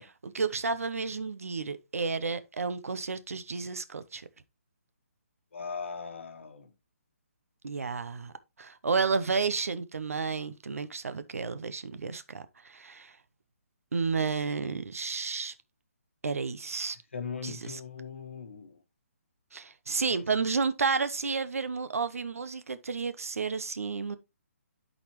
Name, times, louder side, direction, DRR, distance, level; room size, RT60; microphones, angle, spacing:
voice 1, 0.0-4.3 7.6-8.3 8.6-13.1 13.9-15.5 16.2-17.0 17.4-17.8 19.5-24.2, right 4 dB, 80° right, 0.8 m, -31 dB
voice 2, 5.5-6.7 17.1-18.8, left 5 dB, 55° left, 1.2 m, -39 dB
11.5 x 4.1 x 3.1 m
hypercardioid pair, 180°, 8 cm